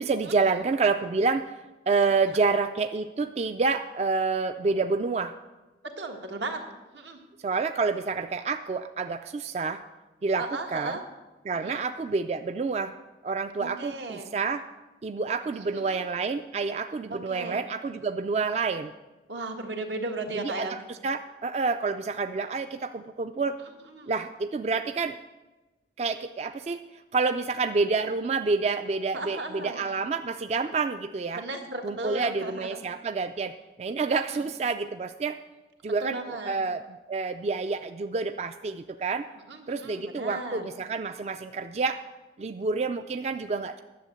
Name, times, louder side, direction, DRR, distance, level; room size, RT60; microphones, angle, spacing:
voice 1, 0.0-1.5 1.9-5.3 7.4-9.8 10.2-10.5 10.7-11.0 11.5-12.9 13.2-14.6 15.0-18.9 20.3-23.6 24.1-25.2 26.0-31.4 31.8-35.4 35.8-36.8 37.1-39.3 39.7-42.0 42.4-43.8, right 4 dB, 35° right, 9 dB, 0.3 m, -28 dB
voice 2, 6.0-6.6 6.9-7.2 10.4-11.0 11.6-11.8 13.6-14.3 15.5-16.0 17.1-17.6 19.3-20.8 23.6-24.2 29.1-29.8 31.3-32.8 34.0-34.5 36.0-36.5 39.5-40.6, right 2 dB, 85° right, 2 dB, 1.6 m, -36 dB
11.0 x 7.3 x 7.7 m, 1.1 s
head